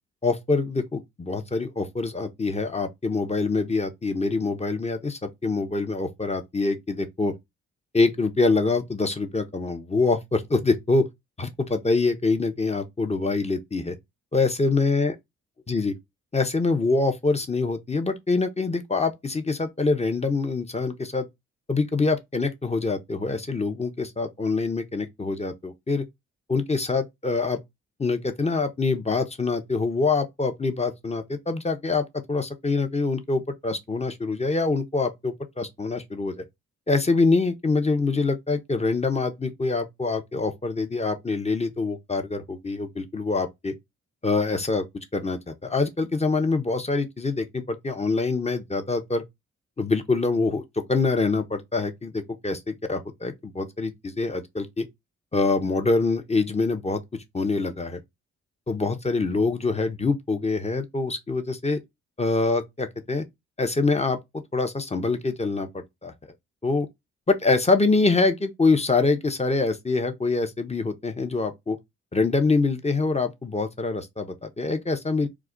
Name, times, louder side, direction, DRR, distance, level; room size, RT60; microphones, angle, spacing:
voice 1, 0.2-7.3 7.9-11.1 11.4-14.0 14.3-15.1 15.7-15.9 16.3-21.3 21.7-26.0 26.5-27.6 28.0-36.4 36.9-43.7 44.2-44.8 45.1-49.2 49.8-50.6 50.9-54.9 55.3-57.0 57.3-58.0 58.7-61.8 62.2-63.2 63.6-64.2 64.5-66.1 66.6-66.9 67.3-71.8 72.1-75.3, left 3 dB, 20° left, 0.7 m, -25 dB
2.3 x 2.1 x 3.7 m
hypercardioid pair, 40°, 32 cm